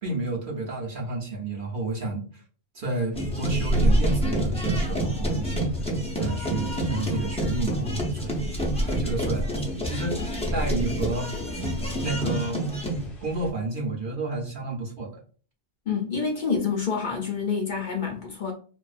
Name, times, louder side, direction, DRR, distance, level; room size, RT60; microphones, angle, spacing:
voice 1, 0.0-2.3 2.7-5.7 6.1-11.3 12.0-12.7 13.2-15.1, right 2 dB, 55° right, 0.8 m, -31 dB
sound 1, 3.1-13.5, right 1 dB, 40° left, 0.9 m, -31 dB
sound 2, 3.1-13.1, right 1 dB, 10° left, 0.3 m, -29 dB
voice 2, 15.9-18.5, left 5 dB, 55° left, 0.6 m, -27 dB
2.4 x 2.4 x 2.3 m
omnidirectional pair, 1.1 m